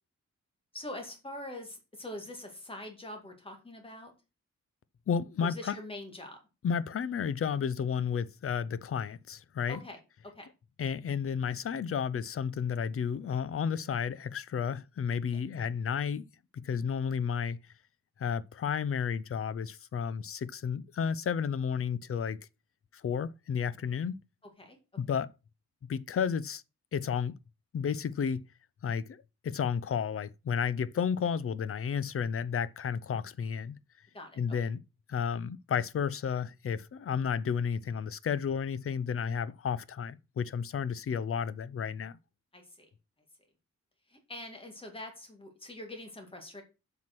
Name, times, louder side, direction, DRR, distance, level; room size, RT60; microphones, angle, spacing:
voice 1, 0.7-4.1 5.4-6.4 9.7-10.0 10.3-10.5 15.3-15.4 24.6-24.8 34.1-34.6 42.5-42.9 44.1-46.6, left 1 dB, 20° left, 2.1 m, -44 dB
voice 2, 5.1-5.7 6.6-9.8 10.8-16.3 16.5-17.6 18.2-22.4 22.9-24.2 25.0-25.3 25.8-26.6 26.9-27.4 27.7-28.5 28.8-33.8 34.4-34.8 35.1-42.2, left 7 dB, 50° left, 0.5 m, -32 dB
7.6 x 5.9 x 6.0 m
wide cardioid pair, 180°, 29 cm